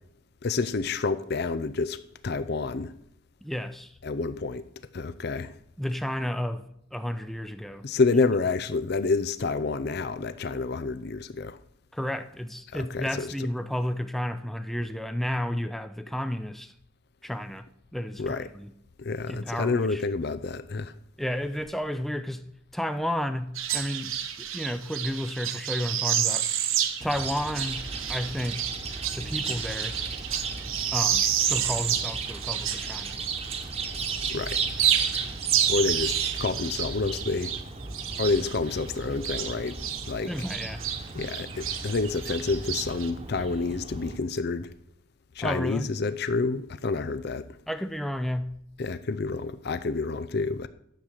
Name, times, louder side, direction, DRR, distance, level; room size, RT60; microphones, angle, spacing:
voice 1, 0.4-2.0 2.2-2.9 4.0-4.6 4.9-5.6 7.8-11.6 12.7-13.3 18.2-18.5 19.0-20.9 34.3-34.6 35.7-37.5 38.2-39.8 40.1-40.3 41.1-44.7 45.4-47.5 48.8-50.7, left 3 dB, 50° left, 0.5 m, -28 dB
voice 2, 3.4-4.0 5.8-7.8 11.9-16.7 17.2-18.7 19.3-20.0 21.2-24.2 24.5-26.5 27.0-28.7 29.1-30.0 30.9-33.2 40.3-40.8 45.4-45.9 47.7-48.6, equal, ahead, 0.5 m, -32 dB
sound 1, 23.5-33.7 34.0-40.1 40.4-43.1, right 9 dB, 80° right, 1.2 m, -30 dB
Chirp tweet, 27.0-44.2, right 4 dB, 30° right, 1.2 m, -36 dB
10.5 x 7.7 x 6.5 m
head